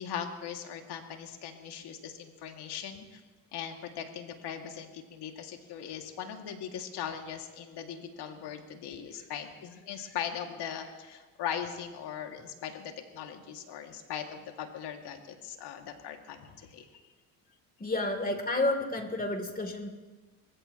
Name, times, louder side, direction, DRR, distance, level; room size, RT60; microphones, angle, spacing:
voice 1, 0.0-3.2 3.5-16.9, left 8 dB, 65° left, 4 dB, 2.3 m, -39 dB
voice 2, 17.8-19.9, left 2 dB, 20° left, 4 dB, 2.9 m, -30 dB
24.5 x 15.5 x 3.0 m, 1.3 s
supercardioid pair, 80°, 43 cm